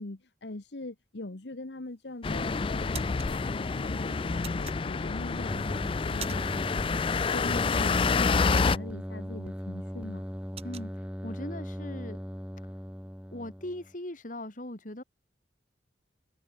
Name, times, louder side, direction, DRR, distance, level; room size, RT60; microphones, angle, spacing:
voice 1, 0.0-10.2, left 2 dB, 70° left, 1.3 m, -42 dB
sound 1, 1.9-2.3 2.7-3.3 4.4-5.3 5.7-6.7 7.0-7.2 7.6-9.3 9.7-9.8 10.1-10.9, right 9 dB, 35° right, 2.3 m, -44 dB
sound 2, 2.2-8.8, left 4 dB, 30° left, 0.4 m, -28 dB
sound 3, 5.3-13.9, equal, 5° right, 2.6 m, -39 dB
voice 2, 10.6-12.2 12.6-12.8 13.3-15.0, left 1 dB, 45° left, 2.6 m, -40 dB
head